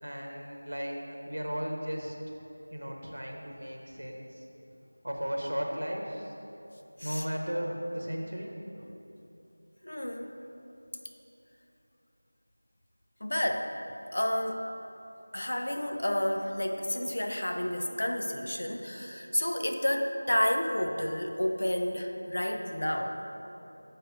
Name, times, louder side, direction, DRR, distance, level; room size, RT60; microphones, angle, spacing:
voice 1, 0.0-2.2 2.7-4.5 5.0-6.3 7.0-8.5, equal, 75° right, 0 dB, 1.1 m, -35 dB
voice 2, 9.8-10.4 13.2-13.7 14.1-14.6 15.3-23.2, left 1 dB, 60° left, 4 dB, 0.6 m, -30 dB
7.9 x 4.7 x 4.9 m, 2.9 s
figure-of-eight pair, 170°, 0 cm